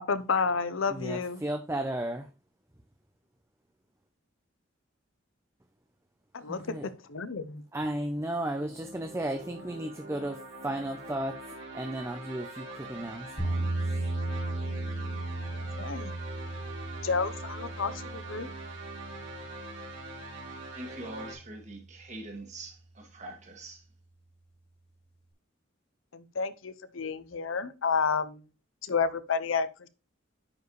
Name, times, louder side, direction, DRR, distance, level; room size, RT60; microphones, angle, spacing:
voice 1, 0.0-1.4 6.4-7.6 15.8-16.1 17.0-18.5 26.1-28.4 28.8-29.9, left 5 dB, 85° left, 0.7 m, -30 dB
voice 2, 0.9-2.3 6.4-6.9 7.7-13.8, right 1 dB, 15° right, 0.6 m, -34 dB
sound 1, 8.5-21.3, right 2 dB, 70° right, 2.5 m, -43 dB
sound 2, 13.4-21.5, right 2 dB, 30° left, 2.0 m, -36 dB
voice 3, 20.7-23.8, right 2 dB, 35° right, 2.0 m, -43 dB
9.8 x 4.7 x 3.1 m
head